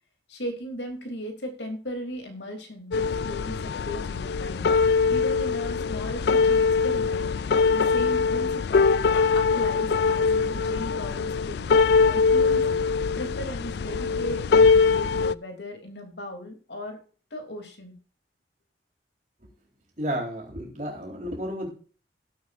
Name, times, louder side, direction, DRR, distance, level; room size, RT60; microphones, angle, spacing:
voice 1, 0.3-4.7 5.1-9.0 9.3-12.7 13.2-17.0 17.3-17.9, left 1 dB, 85° left, 4 dB, 3.0 m, -37 dB
sound 1, 2.9-15.4, left 5 dB, 70° left, 0.4 m, -22 dB
voice 2, 20.0-21.7, equal, 45° right, -1 dB, 4.0 m, -32 dB
17.0 x 8.2 x 2.6 m, 0.39 s
head